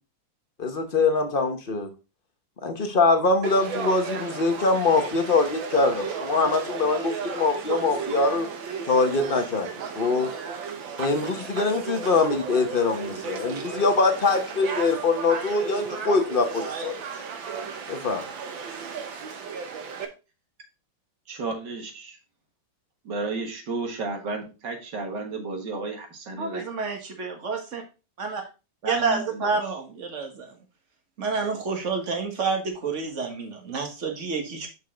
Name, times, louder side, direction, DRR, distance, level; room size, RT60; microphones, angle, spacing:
voice 1, 0.6-1.9 2.6-8.5 8.9-9.7 10.0-10.3 11.0-16.9 17.9-18.2, left 3 dB, 40° left, 6 dB, 0.8 m, -23 dB
Conversation / Crowd, 3.4-20.1, right 6 dB, 85° right, 1.8 m, -34 dB
voice 2, 21.3-22.2 23.1-26.6 28.8-29.7, right 3 dB, 65° right, 3 dB, 2.2 m, -32 dB
voice 3, 26.4-27.8 28.2-28.4 28.9-30.5 31.2-34.7, right 4 dB, 40° right, 3 dB, 1.8 m, -29 dB
6.7 x 5.5 x 3.8 m, 0.30 s
omnidirectional pair, 2.1 m